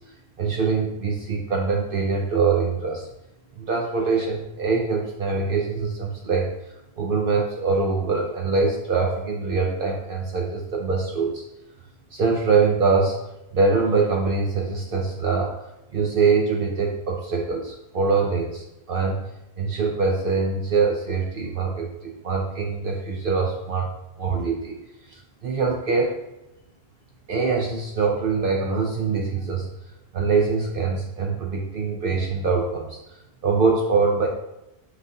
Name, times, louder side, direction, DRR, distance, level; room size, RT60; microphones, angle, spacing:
voice 1, 0.4-3.1 3.6-6.5 7.0-11.4 12.1-13.2 13.5-15.5 15.9-19.2 19.6-23.9 24.2-24.8 25.1-26.2 27.3-29.7 30.1-33.0 33.4-34.3, right 4 dB, 65° right, 0 dB, 0.8 m, -23 dB
5.8 x 5.8 x 2.8 m, 0.90 s
omnidirectional pair, 1.1 m